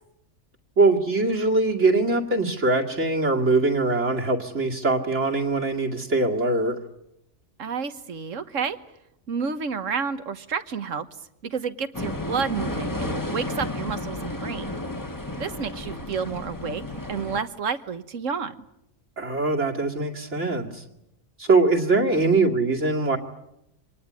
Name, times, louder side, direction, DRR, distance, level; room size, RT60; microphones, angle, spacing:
voice 1, 0.8-6.8 19.2-20.8 21.4-23.2, right 3 dB, 70° right, -1 dB, 2.6 m, -22 dB
voice 2, 7.6-8.8 9.3-11.1 11.4-14.7 15.4-16.8 17.1-18.5, right 6 dB, 85° right, 11 dB, 1.6 m, -30 dB
sound 1, 11.9-17.4, left 1 dB, 15° left, 1.6 m, -32 dB
25.5 x 19.0 x 9.6 m, 0.83 s
omnidirectional pair, 1.3 m